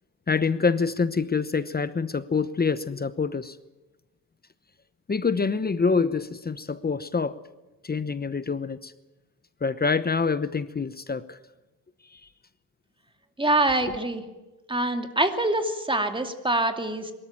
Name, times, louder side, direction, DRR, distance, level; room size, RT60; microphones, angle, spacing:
voice 1, 0.3-3.6 5.1-7.4 7.8-8.9 9.6-11.4 12.1-12.2, left 5 dB, 25° left, 0.9 m, -26 dB
voice 2, 13.4-14.2 14.7-17.1, right 2 dB, 15° right, 2.6 m, -25 dB
23.5 x 13.5 x 9.0 m
cardioid pair, 95°, 39 cm